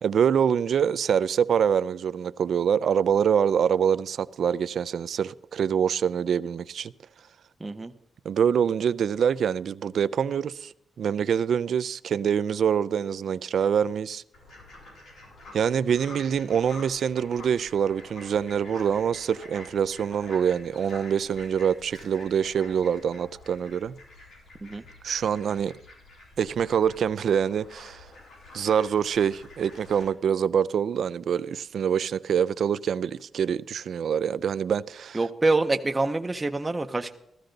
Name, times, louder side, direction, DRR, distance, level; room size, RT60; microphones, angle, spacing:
voice 1, 0.0-6.9 8.3-14.2 15.5-23.9 25.0-25.8 26.4-28.1 28.5-35.2, right 8 dB, 60° right, 0.4 m, -25 dB
voice 2, 7.6-7.9 24.6-24.8 35.1-37.1, right 2 dB, 15° right, 0.6 m, -26 dB
Fowl, 14.3-30.0, left 2 dB, 80° left, 6.8 m, -48 dB
14.5 x 14.0 x 3.9 m
wide cardioid pair, 160°, 0 cm